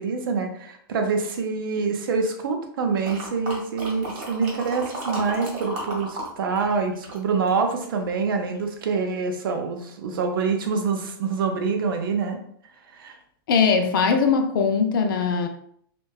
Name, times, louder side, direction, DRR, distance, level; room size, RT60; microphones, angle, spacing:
voice 1, 0.0-12.4 12.9-13.2, right 5 dB, 70° right, 4 dB, 0.5 m, -26 dB
sound 1, 3.0-6.3 6.6-8.0 8.5-8.6, right 1 dB, 35° right, 0.8 m, -34 dB
voice 2, 13.5-15.5, left 5 dB, 65° left, 6 dB, 0.4 m, -20 dB
2.7 x 2.2 x 2.2 m, 0.67 s
supercardioid pair, 170°, 12 cm